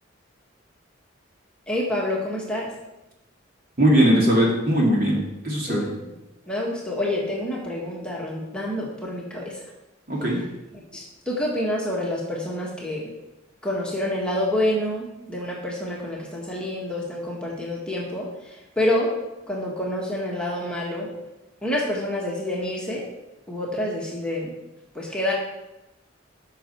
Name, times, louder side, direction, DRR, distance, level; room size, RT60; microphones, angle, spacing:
voice 1, 1.7-2.7 5.7-5.9 6.5-9.6 10.9-13.1 13.6-19.1 19.5-21.1 21.6-23.0 23.5-24.5 24.9-25.3, left 1 dB, 5° left, -4 dB, 1.7 m, -27 dB
voice 2, 3.8-5.8 10.1-10.4, equal, 45° right, -3 dB, 2.8 m, -20 dB
14.0 x 5.8 x 4.6 m, 0.99 s
head